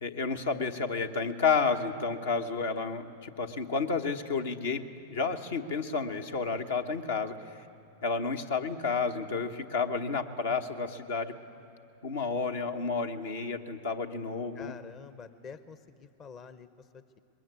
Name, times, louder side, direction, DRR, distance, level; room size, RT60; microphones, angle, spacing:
voice 1, 0.0-4.8 5.1-7.4 8.0-11.3 12.0-14.7, left 4 dB, 70° left, 6 dB, 1.3 m, -31 dB
voice 2, 14.5-17.2, left 5 dB, 35° left, 12 dB, 0.8 m, -48 dB
21.5 x 21.5 x 8.2 m, 2.7 s
hypercardioid pair, 95°, 0 cm